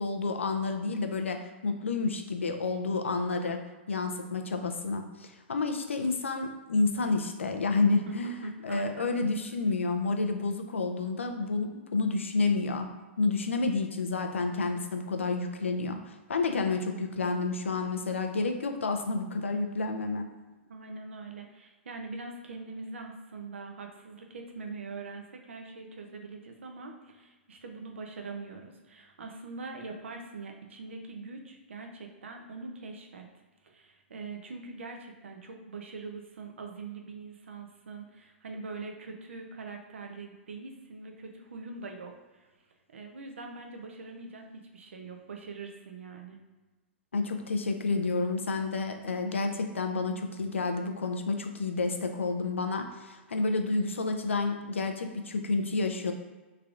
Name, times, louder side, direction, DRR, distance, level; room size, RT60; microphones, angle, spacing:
voice 1, 0.0-3.6 3.9-12.9 13.2-20.3 47.1-56.1, left 3 dB, 80° left, 5 dB, 0.4 m, -30 dB
voice 2, 8.4-9.1 20.7-33.3 33.6-42.5 42.9-46.4, right 3 dB, 75° right, 2 dB, 0.6 m, -43 dB
3.5 x 3.3 x 2.5 m, 1.2 s
figure-of-eight pair, 110°, 7 cm